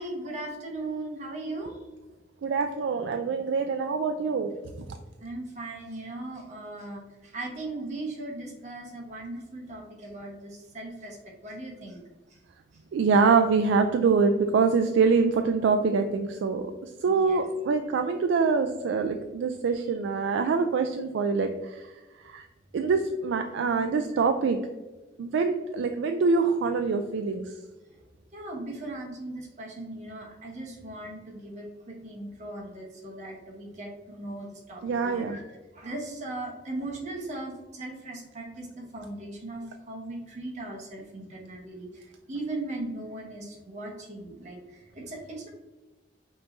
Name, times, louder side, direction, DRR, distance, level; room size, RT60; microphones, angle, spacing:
voice 1, 0.0-1.8 5.2-12.0 17.1-17.4 28.3-35.4 35.7-42.0 42.3-45.5, right 2 dB, 40° right, -1 dB, 0.9 m, -38 dB
voice 2, 2.4-4.5 12.9-16.6 17.0-21.8 22.2-22.5 22.7-24.6 25.2-27.5 34.8-35.4, right 4 dB, 80° right, 6 dB, 0.3 m, -25 dB
5.4 x 3.0 x 2.6 m, 1.2 s
head